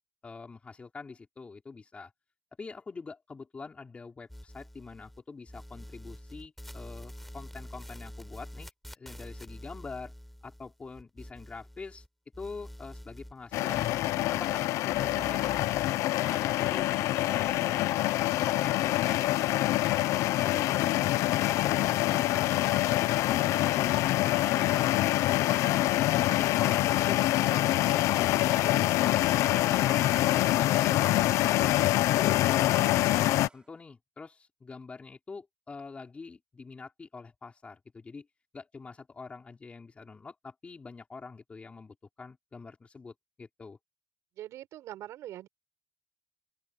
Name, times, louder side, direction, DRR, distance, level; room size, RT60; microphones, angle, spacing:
voice 1, 0.2-2.1 2.6-10.1 10.4-12.0 12.4-14.0 14.3-15.4 16.1-20.0 20.4-25.6 32.4-38.3 38.5-43.8, left 4 dB, 25° left, 5.3 m, -45 dB
sound 1, 4.3-5.2 5.5-12.1 12.3-14.6 14.9-15.9, equal, ahead, 5.0 m, -47 dB
sound 2, 13.5-33.5, left 15 dB, 85° left, 0.7 m, -25 dB
voice 2, 15.0-15.7 20.8-21.1 44.4-45.5, right 13 dB, 75° right, 6.3 m, -44 dB
Domestic sounds home sounds, 16.1-33.7, right 3 dB, 20° right, 5.5 m, -51 dB
open air
cardioid pair, 125°, 5 cm